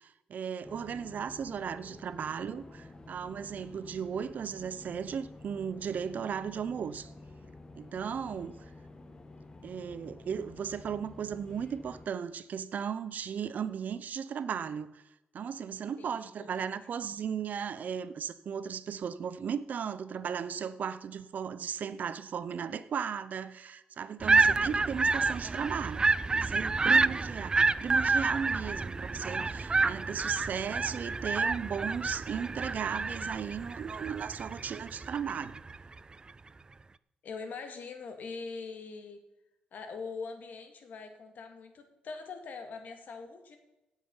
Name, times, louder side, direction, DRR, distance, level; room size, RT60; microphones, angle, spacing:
voice 1, 0.0-7.1 7.7-8.7 9.6-15.0 15.3-26.1 26.3-35.6, right 7 dB, 65° right, 0.7 m, -36 dB
sound 1, 0.6-12.1, left 2 dB, 30° left, 1.4 m, -50 dB
voice 2, 8.0-8.4 16.0-16.7 24.3-24.8 37.2-39.2 39.7-43.6, left 4 dB, 70° left, 2.2 m, -43 dB
sound 2, 24.2-35.8, right 3 dB, 30° right, 0.4 m, -29 dB
17.0 x 7.5 x 5.5 m
cardioid pair, 90°, 3 cm